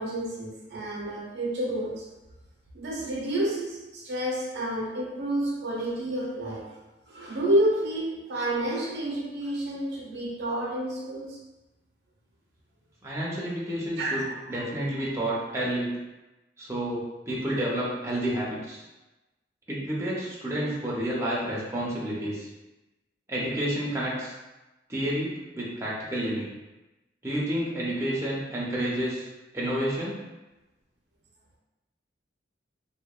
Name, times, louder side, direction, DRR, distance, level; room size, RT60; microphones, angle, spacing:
voice 1, 0.0-2.1 2.7-6.7 7.1-11.4 14.0-14.3, right 1 dB, 65° right, -3 dB, 0.5 m, -29 dB
voice 2, 13.0-14.2 14.5-15.9 16.6-18.8 19.7-22.5 23.3-24.3 24.9-26.5 27.2-29.3 29.5-30.2, right 1 dB, 15° right, -6 dB, 0.5 m, -30 dB
2.7 x 2.1 x 2.2 m, 1.1 s
head